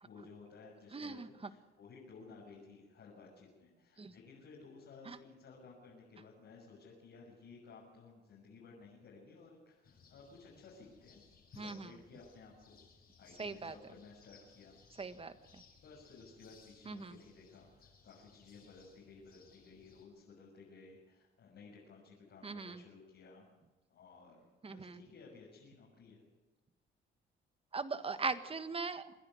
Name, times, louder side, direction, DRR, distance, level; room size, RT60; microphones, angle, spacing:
voice 1, 0.0-11.2 11.5-12.8 13.2-14.8 15.8-23.5 23.9-26.2, left 4 dB, 70° left, -4 dB, 6.9 m, -56 dB
voice 2, 0.9-1.3 4.0-4.1 5.1-5.2 11.6-11.9 13.4-13.7 15.0-15.6 16.8-17.2 22.4-22.8 24.6-25.0 27.7-29.1, right 4 dB, 30° right, 10 dB, 1.6 m, -40 dB
sound 1, 9.8-20.1, left 5 dB, 50° left, 6.0 m, -64 dB
26.5 x 10.5 x 9.6 m, 1.2 s
cardioid pair, 90°, 20 cm